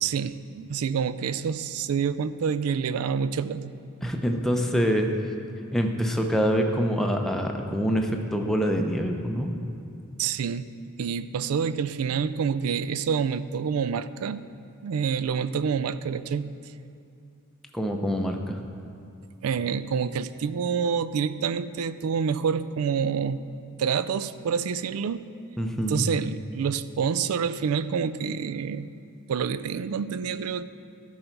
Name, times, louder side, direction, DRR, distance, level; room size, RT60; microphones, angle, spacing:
voice 1, 0.0-3.8 10.2-10.7 11.0-14.5 14.8-16.5 19.4-23.4 23.8-25.3 25.9-28.9 29.3-30.6, right 6 dB, 80° right, 14 dB, 0.4 m, -27 dB
voice 2, 4.0-5.1 5.7-9.5 17.7-18.6 25.6-26.1, equal, ahead, 2 dB, 0.6 m, -25 dB
13.0 x 5.5 x 4.6 m, 2.6 s
head